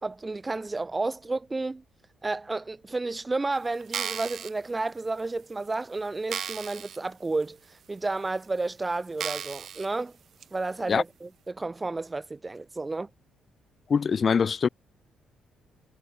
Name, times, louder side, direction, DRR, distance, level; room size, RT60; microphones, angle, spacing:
voice 1, 0.0-1.8 2.2-7.6 7.9-10.1 10.5-13.1, right 3 dB, 20° right, 1.8 m, -31 dB
sound 1, 3.8-4.5 5.2-5.3 5.7-5.8 6.3-7.0 7.4-7.5 8.3-8.4 9.2-9.9 10.4-10.5, right 8 dB, 60° right, 1.6 m, -34 dB
voice 2, 13.9-14.7, left 6 dB, 45° left, 1.7 m, -23 dB
cardioid pair, 90°, 0 cm